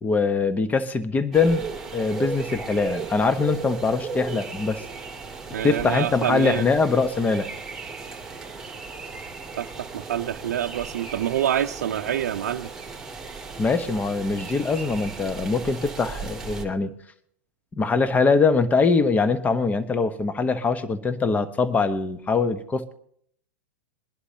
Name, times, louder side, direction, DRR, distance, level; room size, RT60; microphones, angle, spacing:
voice 1, 0.0-1.7 1.9-4.8 5.6-7.5 13.6-17.0 17.8-22.9, left 4 dB, 20° left, 11 dB, 1.0 m, -23 dB
sound 1, 1.3-16.6, right 4 dB, 5° right, 2.7 m, -36 dB
voice 2, 5.5-6.7 9.6-12.7, right 10 dB, 70° right, 4 dB, 0.6 m, -27 dB
22.5 x 11.5 x 2.9 m, 0.65 s
hypercardioid pair, 105°, 9 cm